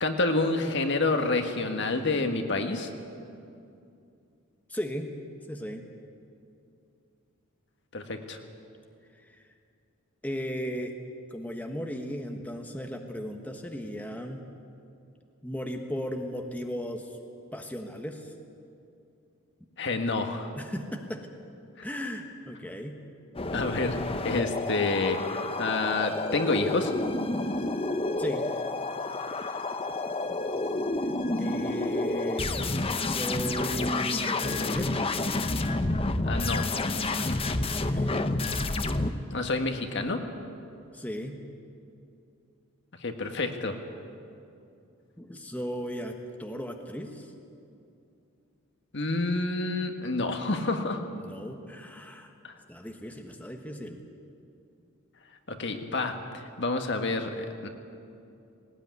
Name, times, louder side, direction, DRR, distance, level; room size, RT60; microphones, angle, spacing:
voice 1, 0.0-2.9 7.9-8.4 19.8-20.5 21.8-21.9 23.5-24.0 24.2-25.2 25.6-26.9 36.2-36.6 39.3-40.3 43.0-43.8 48.9-51.0 52.4-52.5 55.5-57.7, left 3 dB, 55° left, 5 dB, 1.7 m, -28 dB
voice 2, 4.7-5.1 5.5-5.8 9.3-9.4 10.2-10.9 11.3-14.4 15.4-17.1 17.5-18.3 20.6-21.3 21.8-23.0 28.2-28.4 31.4-32.6 33.0-34.9 37.0-37.5 37.9-38.1 40.9-41.4 45.2-47.3 51.1-52.3 52.7-54.0, equal, 5° left, 3 dB, 1.3 m, -36 dB
sound 1, 23.3-39.1, left 2 dB, 25° left, 0.8 m, -29 dB
18.5 x 18.5 x 9.6 m, 2.6 s
head